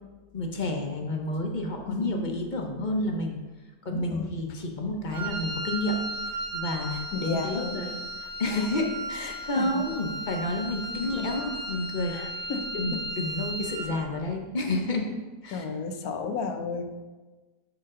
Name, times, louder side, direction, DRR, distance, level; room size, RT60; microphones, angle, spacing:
voice 1, 0.3-3.4 3.8-6.0 6.5-8.0 8.4-15.1 15.4-15.6, left 2 dB, 45° left, 2 dB, 0.6 m, -30 dB
voice 2, 3.8-4.4 7.1-7.9 9.6-9.8 11.0-11.3 12.1-13.0 15.5-16.8, left 4 dB, 70° left, 6 dB, 1.2 m, -33 dB
Wind instrument woodwind instrument, 5.1-14.0, right 1 dB, 40° right, 1.6 m, -35 dB
10.5 x 4.8 x 3.7 m, 1.3 s
omnidirectional pair, 1.7 m